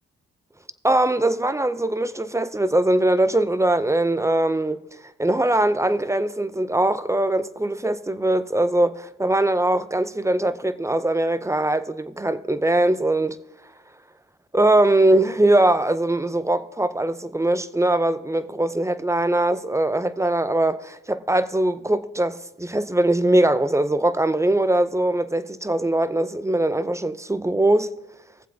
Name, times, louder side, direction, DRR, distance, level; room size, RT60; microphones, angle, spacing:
voice 1, 0.8-4.8 5.2-13.4 14.5-27.9, right 1 dB, 10° right, 0.4 m, -21 dB
19.0 x 7.5 x 2.7 m
cardioid pair, 75°, 31 cm